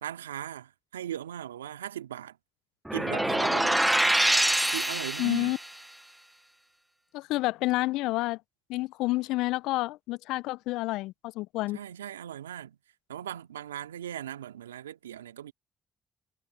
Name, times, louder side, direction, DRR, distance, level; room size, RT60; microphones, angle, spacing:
voice 1, 0.0-2.4 2.9-3.9 4.7-5.5 11.7-12.8 13.1-15.5, right 10 dB, 90° right, 2.4 m, -38 dB
sound 1, 2.9-5.7, right 1 dB, 10° right, 1.0 m, -25 dB
voice 2, 5.2-5.6 7.1-8.4 8.7-11.8, left 19 dB, 75° left, 0.7 m, -29 dB
hypercardioid pair, 40°, 0 cm